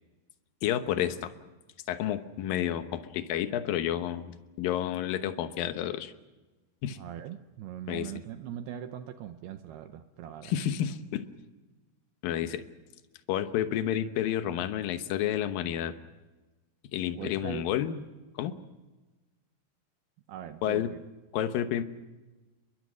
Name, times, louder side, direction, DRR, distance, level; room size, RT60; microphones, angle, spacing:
voice 1, 0.6-1.3 1.9-6.1 6.8-7.0 7.9-8.1 10.4-11.2 12.2-12.6 13.3-15.9 16.9-18.0 18.4-18.5 20.6-20.9 21.3-21.8, left 11 dB, 70° left, 9 dB, 2.4 m, -30 dB
voice 2, 7.0-10.6 17.1-17.7 20.3-21.0, right 10 dB, 75° right, 8 dB, 2.6 m, -41 dB
29.0 x 22.5 x 6.2 m, 1.2 s
omnidirectional pair, 5.0 m